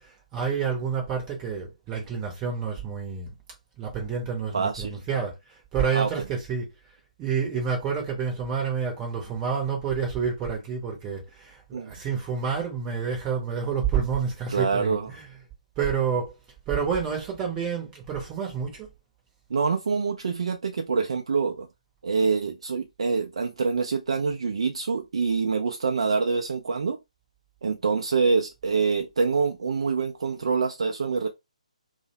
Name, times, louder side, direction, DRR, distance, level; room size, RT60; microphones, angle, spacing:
voice 1, 0.0-3.3 3.8-6.7 7.2-15.3 15.8-16.3 16.7-18.9, right 6 dB, 15° right, 0.7 m, -29 dB
voice 2, 4.5-5.0 5.9-6.1 11.7-11.9 14.5-15.1 19.5-21.7 22.0-27.0 27.6-31.3, right 5 dB, 50° right, 0.3 m, -25 dB
2.6 x 2.0 x 2.8 m
figure-of-eight pair, 140°, 4 cm